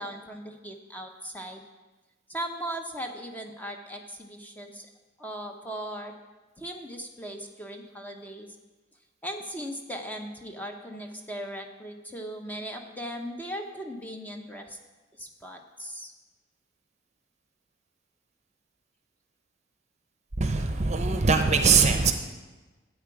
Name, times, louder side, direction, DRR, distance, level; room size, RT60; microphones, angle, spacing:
voice 1, 0.0-1.6 2.3-4.9 5.2-6.1 6.6-8.5 9.2-14.8 15.2-16.1, equal, 10° left, 3 dB, 0.8 m, -38 dB
voice 2, 20.4-22.1, right 5 dB, 35° right, 7 dB, 0.8 m, -22 dB
12.0 x 8.5 x 4.8 m, 1.2 s
head